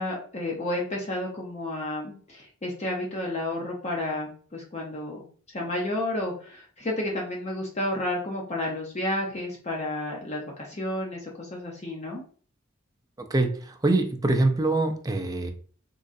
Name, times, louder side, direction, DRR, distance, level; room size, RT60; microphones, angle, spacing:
voice 1, 0.0-12.2, left 1 dB, 35° left, -1 dB, 0.7 m, -31 dB
voice 2, 13.2-15.5, right 2 dB, 20° right, 5 dB, 0.4 m, -24 dB
3.7 x 3.0 x 2.6 m, 0.43 s
head